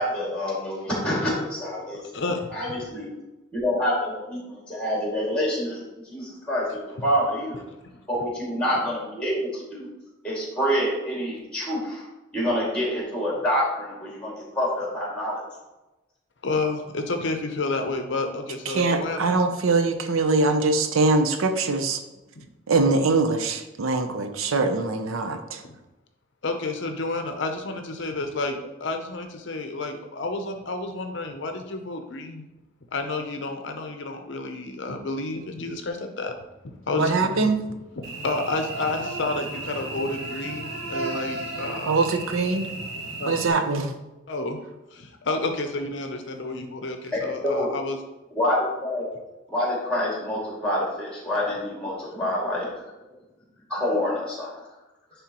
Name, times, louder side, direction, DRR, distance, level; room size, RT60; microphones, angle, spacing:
voice 1, 0.0-2.0 2.5-3.1 3.5-7.6 8.1-9.9 10.2-12.0 12.3-15.4 47.1-47.7 48.3-49.0 49.5-52.9 53.7-54.5, equal, 5° left, -5 dB, 2.1 m, -27 dB
voice 2, 2.1-2.5 16.4-19.4 22.4-22.5 25.6-25.7 26.4-32.5 32.9-36.3 36.9-37.5 38.0-42.0 43.2-43.3 44.3-44.6 44.9-48.0, left 3 dB, 60° left, 5 dB, 0.6 m, -30 dB
voice 3, 18.7-22.0 22.7-25.6 37.0-37.6 41.9-42.7 43.3-43.9, right 3 dB, 85° right, 7 dB, 0.6 m, -23 dB
Cricket / Buzz, 38.0-43.5, right 2 dB, 50° right, 1.0 m, -34 dB
9.7 x 3.5 x 2.9 m, 1.0 s
head